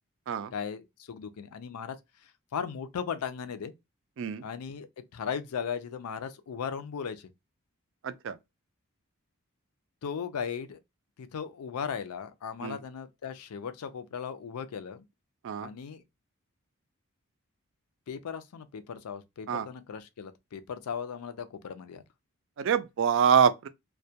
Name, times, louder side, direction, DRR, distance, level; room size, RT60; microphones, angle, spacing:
voice 1, 0.5-2.0 2.5-3.7 4.4-4.9 5.1-7.3 10.0-10.8 11.2-15.0 15.6-16.0 18.1-22.0, left 7 dB, 85° left, 0.4 m, -37 dB
voice 2, 8.0-8.4 12.6-12.8 15.4-15.7 19.5-19.7 22.6-23.7, right 7 dB, 55° right, 0.3 m, -25 dB
2.2 x 2.1 x 2.7 m
head